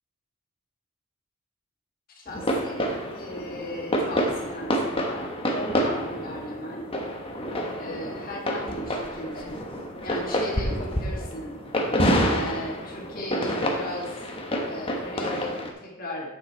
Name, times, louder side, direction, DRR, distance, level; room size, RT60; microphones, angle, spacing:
voice 1, 2.1-6.8 7.8-9.6 10.0-11.6 12.2-14.2 14.6-16.4, left 1 dB, 45° left, -1 dB, 1.7 m, -37 dB
sound 1, 2.3-15.7, equal, 25° left, 1.1 m, -28 dB
8.9 x 6.5 x 4.4 m, 0.94 s
head